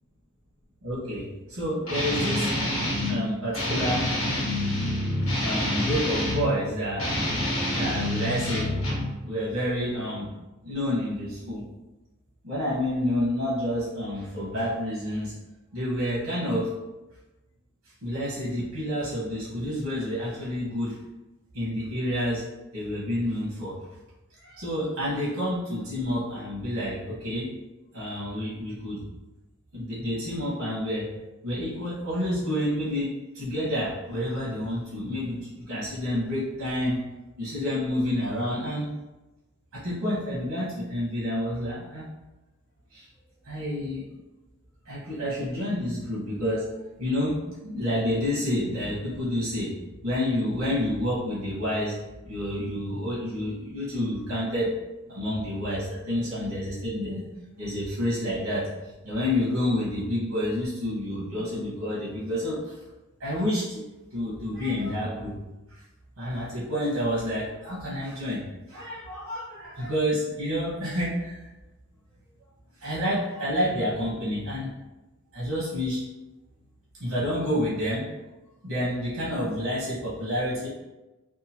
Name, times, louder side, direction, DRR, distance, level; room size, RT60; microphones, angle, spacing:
voice 1, 0.8-2.5 3.1-4.1 5.4-7.2 7.7-8.7 9.2-10.3 10.6-11.6 12.4-15.3 15.7-16.7 18.0-21.0 21.5-22.4 22.7-23.8 24.4-27.5 27.9-29.0 29.7-37.0 37.4-38.9 39.7-42.0 42.9-43.1 43.4-44.0 44.8-46.6 47.0-47.4 47.6-49.7 50.0-51.9 52.2-54.7 55.1-57.3 57.6-58.7 59.0-62.7 63.2-63.8 64.1-65.4 65.7-65.8 66.2-68.4 68.7-71.4 72.8-74.7 75.3-76.0 77.0-78.1 78.6-80.7, left 1 dB, 70° right, -8 dB, 1.0 m, -29 dB
Guitar, 1.8-3.2 3.5-6.5 6.9-9.1, left 1 dB, 80° left, 1.0 m, -27 dB
2.8 x 2.3 x 2.8 m, 1.1 s
head